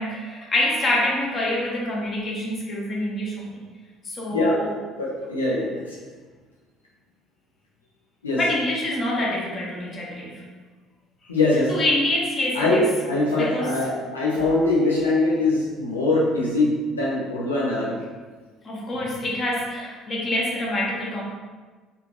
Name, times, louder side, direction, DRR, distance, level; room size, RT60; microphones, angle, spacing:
voice 1, 0.0-3.4 4.0-4.7 8.3-10.4 11.7-12.8 13.4-13.7 18.6-21.2, left 1 dB, 35° left, -4 dB, 1.2 m, -26 dB
voice 2, 5.0-6.0 8.2-8.4 11.3-11.8 12.5-18.0, left 2 dB, 80° left, -5 dB, 0.9 m, -22 dB
4.7 x 2.7 x 3.3 m, 1.4 s
figure-of-eight pair, 55°, 0 cm